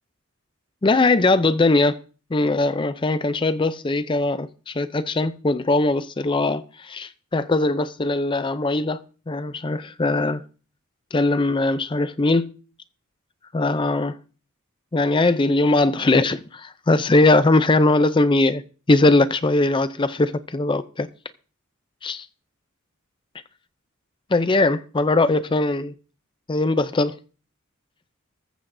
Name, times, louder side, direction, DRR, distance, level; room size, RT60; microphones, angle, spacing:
voice 1, 0.8-2.0 2.3-9.0 9.3-10.4 11.1-12.5 13.5-14.2 14.9-18.6 18.9-21.1 22.0-22.3 24.3-25.9 26.5-27.1, left 2 dB, 25° left, 0.5 m, -20 dB
14.5 x 14.5 x 2.6 m
head